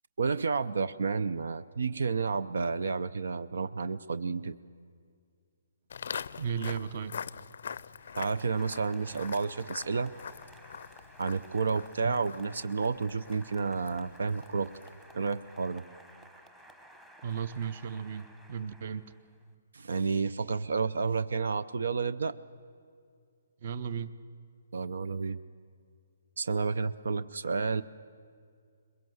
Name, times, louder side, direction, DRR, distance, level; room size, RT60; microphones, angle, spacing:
voice 1, 0.2-4.6 8.2-10.1 11.2-14.7 15.1-15.8 19.7-22.4 24.7-25.4 26.4-27.8, right 4 dB, 80° right, 16 dB, 0.6 m, -31 dB
Walk footsteps, 5.9-15.1, left 7 dB, 60° left, 0.5 m, -44 dB
voice 2, 6.4-7.1 12.0-12.2 17.2-19.1 23.6-24.1, right 7 dB, 40° right, 16 dB, 0.7 m, -35 dB
Applause, 8.0-19.5, right 1 dB, 10° right, 1.0 m, -55 dB
22.0 x 21.5 x 7.8 m, 2.2 s
hypercardioid pair, 170°, 0 cm